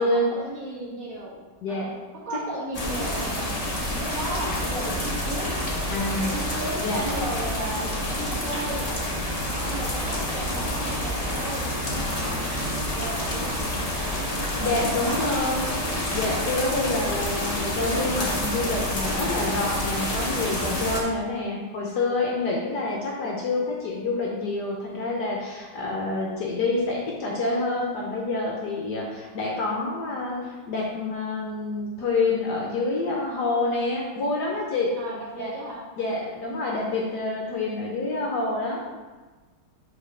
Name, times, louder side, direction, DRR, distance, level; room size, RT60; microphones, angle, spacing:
voice 1, 0.0-1.4 1.7-3.4 3.9-5.5 6.2-8.8 9.6-14.1 14.6-15.5 22.6-22.9 35.0-35.8, right 1 dB, 45° right, -7 dB, 1.9 m, -35 dB
voice 2, 1.6-1.9 2.4-2.5 5.9-6.3 6.8-7.0 14.6-15.7 15.9-34.9 35.4-35.5 36.0-38.9, left 2 dB, 60° left, -2 dB, 1.2 m, -27 dB
sound 1, 2.7-21.0, left 1 dB, 45° left, 0.5 m, -28 dB
5.3 x 4.1 x 5.0 m, 1.3 s
omnidirectional pair, 2.3 m